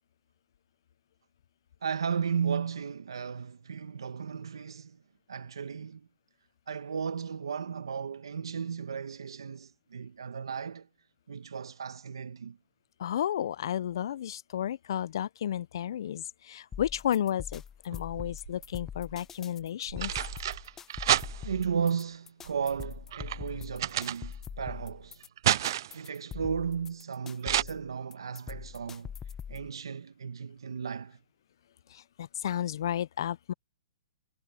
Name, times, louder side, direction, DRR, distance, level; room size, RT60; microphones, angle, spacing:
voice 1, 1.8-5.0 5.3-6.1 6.7-10.9 11.3-12.6 21.4-25.3 25.9-29.1 29.5-31.2, right 6 dB, 90° right, 1.3 m, -35 dB
voice 2, 13.0-20.1 32.2-33.5, left 10 dB, 65° left, 0.4 m, -32 dB
sound 1, 16.7-29.7, left 7 dB, 15° left, 0.8 m, -43 dB
sound 2, 17.9-18.7 19.6-21.7 22.4-24.7 25.0-26.1 27.4-27.6, right 12 dB, 60° right, 0.5 m, -31 dB
hypercardioid pair, 140°, 2 cm